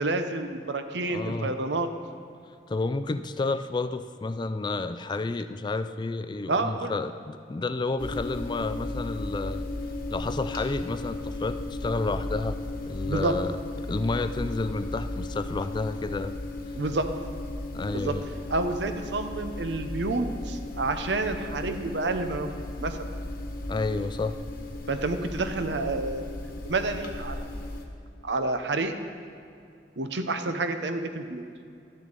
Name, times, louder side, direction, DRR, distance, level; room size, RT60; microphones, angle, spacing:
voice 1, 0.0-1.9 6.5-7.0 13.0-13.4 16.8-17.1 17.9-18.1 18.5-22.5 22.8-23.0 24.9-27.4 28.2-28.9 30.0-31.4, right 2 dB, 75° right, 8 dB, 0.8 m, -29 dB
voice 2, 1.1-1.5 2.7-9.7 10.1-12.6 12.9-13.5 13.9-16.4 17.7-18.2 23.7-24.4, left 3 dB, 25° left, 11 dB, 0.3 m, -30 dB
sound 1, 8.0-27.9, left 2 dB, 55° left, 1.2 m, -35 dB
12.0 x 10.5 x 4.0 m, 2.4 s
head